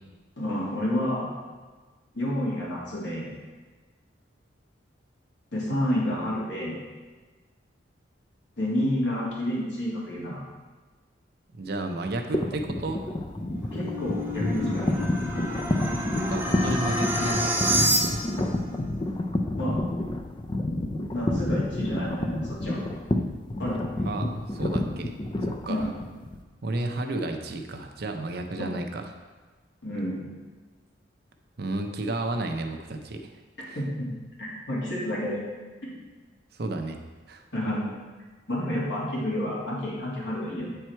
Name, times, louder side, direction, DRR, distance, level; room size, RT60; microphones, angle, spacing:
voice 1, 0.4-1.3 2.1-3.3 5.5-6.8 8.6-10.4 13.6-15.1 19.5-19.8 21.1-22.8 23.6-24.0 25.7-25.9 28.6-28.7 29.8-30.3 33.8-34.1 34.4-35.4 35.8-35.9 37.5-37.9 38.5-40.8, left 1 dB, 70° left, -5 dB, 2.3 m, -29 dB
voice 2, 11.5-13.0 16.2-17.6 24.1-25.2 25.7-25.9 26.6-29.1 31.6-33.3 33.7-33.8 36.5-37.0 37.3-37.4, right 2 dB, 55° right, 5 dB, 0.6 m, -32 dB
sound 1, 12.3-26.4, left 1 dB, 25° left, 0.5 m, -29 dB
sound 2, 13.3-18.5, right 1 dB, 10° right, 0.9 m, -29 dB
8.0 x 4.6 x 4.5 m, 1.3 s
head